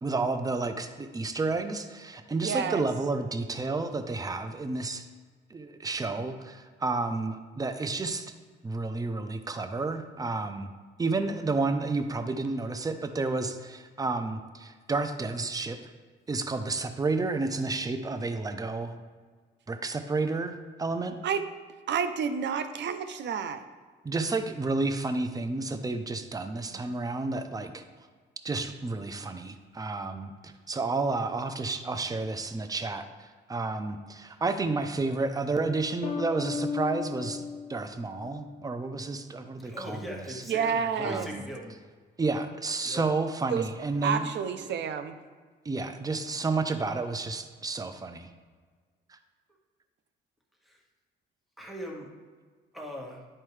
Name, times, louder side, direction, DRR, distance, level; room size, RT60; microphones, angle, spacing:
voice 1, 0.0-5.1 5.5-8.3 8.6-10.7 11.0-15.8 16.3-19.0 19.7-21.2 24.0-27.8 28.4-37.4 37.7-40.4 41.0-41.4 42.2-44.3 44.6-44.7 45.6-48.3 49.1-49.2, right 3 dB, 20° right, 9 dB, 0.6 m, -31 dB
voice 2, 2.4-2.8 21.2-21.4 21.9-23.6 26.7-26.8 40.5-41.3 43.5-43.7 44.0-45.2, right 7 dB, 65° right, 10 dB, 0.6 m, -29 dB
sound 1, 36.0-38.7, left 5 dB, 35° left, 0.6 m, -35 dB
voice 3, 39.6-41.7 42.8-43.1 50.6-50.8 51.6-52.1 52.7-53.3, equal, ahead, -1 dB, 1.5 m, -40 dB
10.5 x 4.3 x 3.2 m, 1.5 s
cardioid pair, 90°, 20 cm